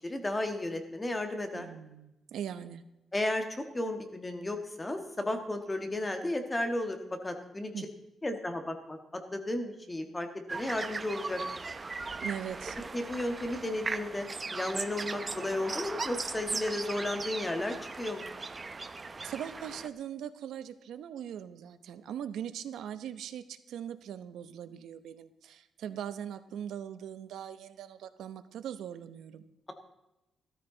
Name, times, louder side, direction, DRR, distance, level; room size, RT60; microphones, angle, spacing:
voice 1, 0.0-1.7 3.1-7.9 8.2-11.4 12.9-18.3, left 1 dB, 15° left, 5 dB, 1.6 m, -34 dB
voice 2, 1.5-2.8 7.7-7.9 12.2-12.8 19.2-29.4, right 9 dB, 85° right, 12 dB, 0.8 m, -40 dB
sound 1, 10.5-19.9, right 3 dB, 25° right, 0.7 m, -38 dB
15.0 x 13.5 x 3.9 m, 0.94 s
cardioid pair, 135°, 0 cm